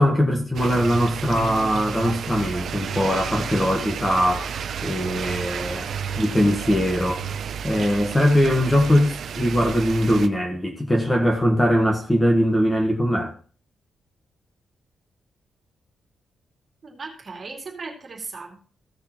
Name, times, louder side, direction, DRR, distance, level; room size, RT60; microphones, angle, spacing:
voice 1, 0.0-5.9 6.2-7.3 7.6-13.3, equal, 10° left, 1.2 m, -21 dB
sound 1, 0.5-10.3, right 7 dB, 60° right, 0.6 m, -31 dB
voice 2, 16.8-18.6, right 4 dB, 35° right, 2.4 m, -37 dB
15.5 x 6.5 x 3.0 m
wide cardioid pair, 160°, 0 cm